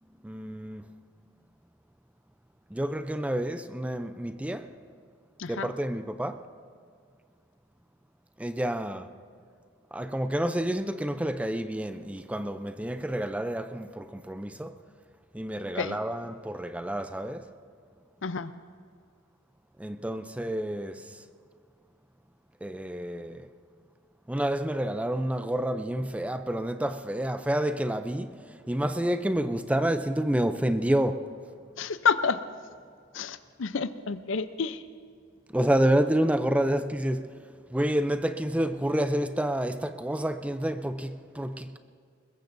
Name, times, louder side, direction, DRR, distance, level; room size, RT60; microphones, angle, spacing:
voice 1, 0.2-0.9 2.7-4.7 5.5-6.5 8.4-9.1 9.9-14.8 15.3-17.5 19.8-21.2 22.6-23.5 24.3-31.3 35.5-37.4 37.7-41.8, right 1 dB, 5° right, 0.4 m, -29 dB
voice 2, 5.4-5.7 15.8-16.0 18.2-18.5 31.8-32.4 33.1-34.8, left 5 dB, 65° left, 0.6 m, -29 dB
22.0 x 21.0 x 2.6 m
head